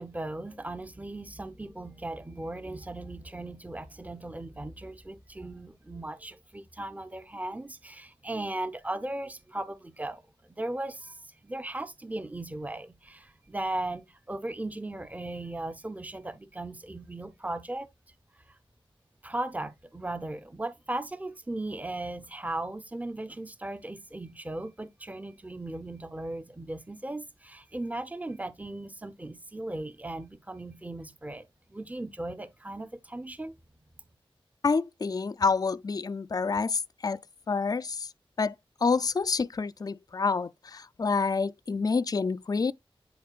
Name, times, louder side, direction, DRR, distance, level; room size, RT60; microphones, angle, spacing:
voice 1, 0.0-17.9 18.5-18.6 19.2-33.5, right 2 dB, 15° right, 0.7 m, -37 dB
voice 2, 34.6-37.2 37.5-38.1 38.4-38.5 38.8-42.7, left 4 dB, 40° left, 0.4 m, -28 dB
10.0 x 4.5 x 2.4 m
wide cardioid pair, 70°, 10 cm